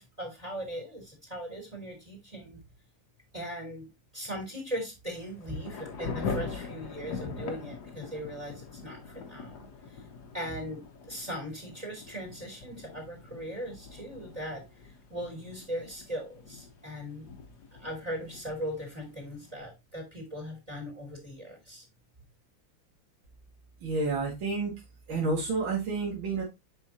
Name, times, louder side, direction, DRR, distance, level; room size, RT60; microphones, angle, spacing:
voice 1, 0.0-2.6 3.3-9.7 10.3-14.6 15.1-17.3 17.8-21.8, equal, 15° right, 0 dB, 3.0 m, -39 dB
Thunder / Rain, 5.1-19.6, left 5 dB, 55° left, 1.5 m, -42 dB
voice 2, 23.8-24.7 25.1-26.4, right 3 dB, 75° right, -3 dB, 2.8 m, -29 dB
7.6 x 5.5 x 2.9 m, 0.23 s
omnidirectional pair, 2.2 m